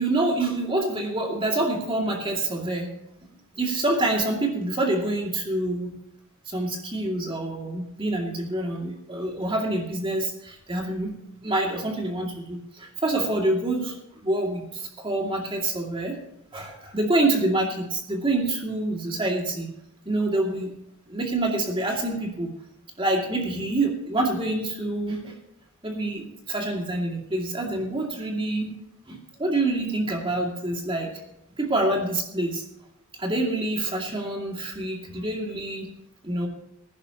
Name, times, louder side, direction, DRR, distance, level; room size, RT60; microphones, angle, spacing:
voice 1, 0.0-2.9 3.6-6.0 6.5-11.1 11.4-16.2 16.5-19.7 20.0-20.7 21.1-22.5 23.0-25.4 25.8-28.7 29.1-31.1 31.6-32.6 33.2-35.9 36.2-36.5, right 2 dB, 25° right, 0 dB, 2.3 m, -26 dB
21.0 x 11.0 x 2.9 m, 0.82 s
head